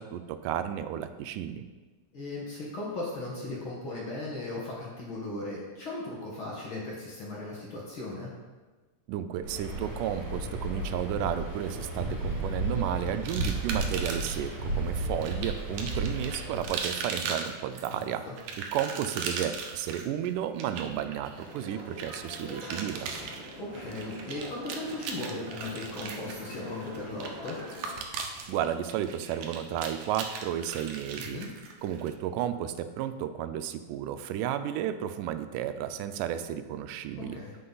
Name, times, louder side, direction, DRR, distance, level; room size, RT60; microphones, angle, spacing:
voice 1, 0.0-1.6 9.1-18.2 18.6-23.1 28.5-31.4 31.8-37.4, right 10 dB, 90° right, 10 dB, 2.1 m, -33 dB
voice 2, 2.1-8.3 17.9-18.3 23.6-27.6 31.2-31.5 37.2-37.6, left 2 dB, 50° left, -4 dB, 1.8 m, -37 dB
Waves surf, 9.4-16.7, right 2 dB, 45° right, 3.0 m, -33 dB
sound 1, 13.3-14.5 15.2-32.1, right 5 dB, 75° right, 2.0 m, -38 dB
sound 2, 21.3-27.9, equal, 20° right, 2.5 m, -44 dB
9.6 x 5.9 x 3.9 m, 1.3 s
omnidirectional pair, 3.7 m